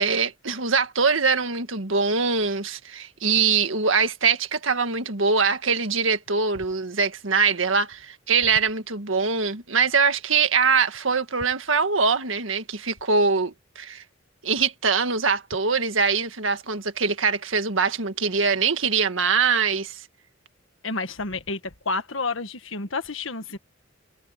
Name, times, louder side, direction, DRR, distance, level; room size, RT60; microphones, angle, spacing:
voice 1, 0.0-14.0 14.4-20.0, right 5 dB, 75° right, 1.8 m, -23 dB
voice 2, 20.8-23.6, left 3 dB, 75° left, 1.6 m, -30 dB
head